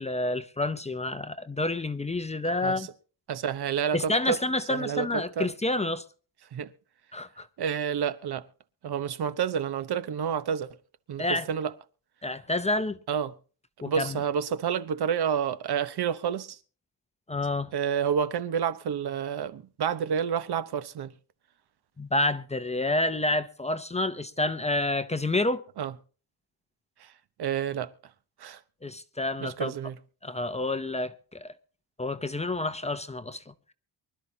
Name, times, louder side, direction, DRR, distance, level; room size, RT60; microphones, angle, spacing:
voice 1, 0.0-2.9 3.9-6.0 7.1-7.5 11.2-11.5 12.2-13.0 13.8-14.2 17.3-17.7 22.0-25.6 28.8-29.7 30.2-31.5 32.0-33.5, left 2 dB, 15° left, 0.6 m, -29 dB
voice 2, 2.5-2.9 3.3-4.4 4.7-5.5 6.5-6.7 7.6-8.5 8.8-10.8 11.1-11.7 13.1-13.3 13.8-16.6 17.7-21.1 25.8-25.9 27.0-27.1 27.4-27.9 28.4-28.6 29.4-30.0, right 8 dB, 70° right, 1.1 m, -29 dB
24.5 x 12.5 x 2.8 m
wide cardioid pair, 160°, 41 cm